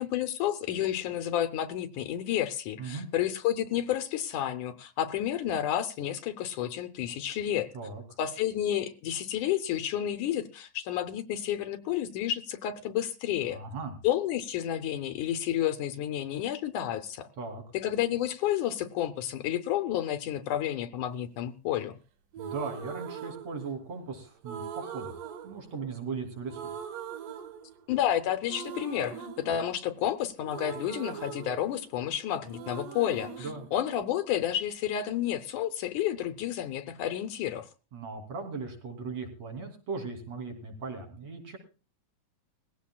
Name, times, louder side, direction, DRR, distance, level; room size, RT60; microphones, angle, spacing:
voice 1, 0.0-7.7 8.2-13.6 14.0-17.3 17.7-22.0 27.9-37.7, left 11 dB, 75° left, 11 dB, 2.2 m, -30 dB
voice 2, 13.5-13.9 17.4-17.6 22.4-26.7 33.4-33.7 37.9-41.6, right 4 dB, 50° right, 3 dB, 4.0 m, -38 dB
sound 1, 22.3-24.0 24.4-26.2 26.5-28.1 28.4-32.2 32.4-34.5, right 7 dB, 80° right, 3.2 m, -42 dB
20.5 x 16.0 x 2.3 m, 0.33 s
omnidirectional pair, 3.8 m